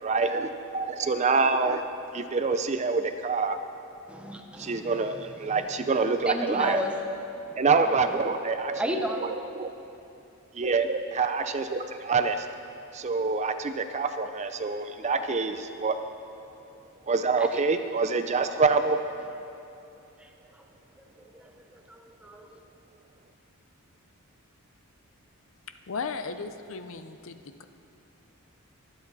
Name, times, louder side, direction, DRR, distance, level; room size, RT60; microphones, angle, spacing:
voice 1, 0.0-1.8 2.1-3.6 4.6-6.8 7.6-9.7 10.5-12.5 12.9-16.0 17.1-19.0, right 4 dB, 30° right, 9 dB, 0.4 m, -26 dB
voice 2, 4.1-5.1 5.5-5.6 6.3-6.9 7.5-7.6 8.0-8.1 8.8-9.2 17.4-17.6 20.2-20.3 21.2-22.6, equal, 5° right, 3 dB, 0.8 m, -34 dB
voice 3, 25.9-27.6, left 4 dB, 60° left, 10 dB, 0.6 m, -36 dB
23.0 x 8.3 x 4.1 m, 2.7 s
head